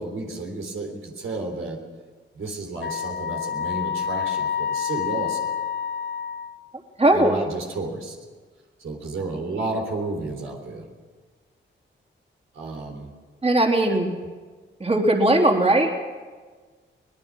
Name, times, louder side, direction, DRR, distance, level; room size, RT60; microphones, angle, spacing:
voice 1, 0.0-1.8 2.4-5.6 7.1-8.2 8.8-10.9 12.5-13.1 13.9-14.0, right 3 dB, 85° right, 1 dB, 3.7 m, -32 dB
Wind instrument woodwind instrument, 2.8-6.7, left 8 dB, 55° left, 0.9 m, -28 dB
voice 2, 7.0-7.4 13.4-14.1 14.8-15.9, right 1 dB, 30° right, 1 dB, 3.6 m, -19 dB
24.5 x 18.5 x 6.4 m, 1.4 s
cardioid pair, 65°, 20 cm